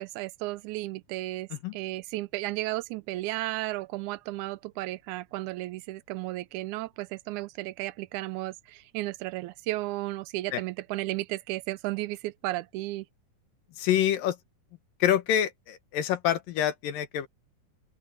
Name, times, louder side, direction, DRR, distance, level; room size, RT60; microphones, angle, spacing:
voice 1, 0.0-13.1, right 18 dB, 80° right, 1.8 m, -34 dB
voice 2, 13.8-14.4 15.0-17.3, left 10 dB, 80° left, 2.9 m, -26 dB
open air
omnidirectional pair, 3.9 m